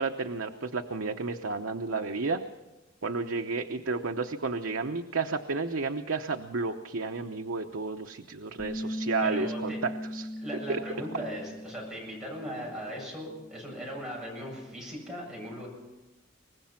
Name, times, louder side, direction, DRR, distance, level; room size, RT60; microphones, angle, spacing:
voice 1, 0.0-2.4 3.0-10.3 10.7-10.8 11.1-11.2, right 4 dB, 85° right, 4 dB, 0.9 m, -32 dB
Bass guitar, 8.6-12.9 13.2-14.8, equal, 75° left, 7.0 m, -39 dB
voice 2, 9.2-9.8 10.4-15.7, equal, 5° right, -4 dB, 7.5 m, -39 dB
24.0 x 19.5 x 5.8 m, 1.1 s
head